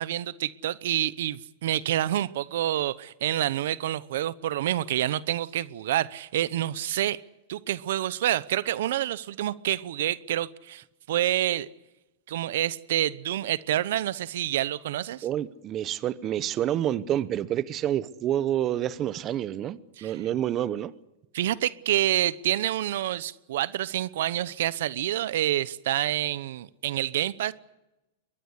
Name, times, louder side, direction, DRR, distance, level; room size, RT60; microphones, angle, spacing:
voice 1, 0.0-7.2 7.5-11.7 12.3-15.3 20.0-20.2 21.3-27.5, right 12 dB, 70° right, 0.9 m, -28 dB
voice 2, 15.2-20.9, right 11 dB, 30° right, 0.9 m, -28 dB
22.5 x 21.5 x 8.2 m
supercardioid pair, 135°, 0 cm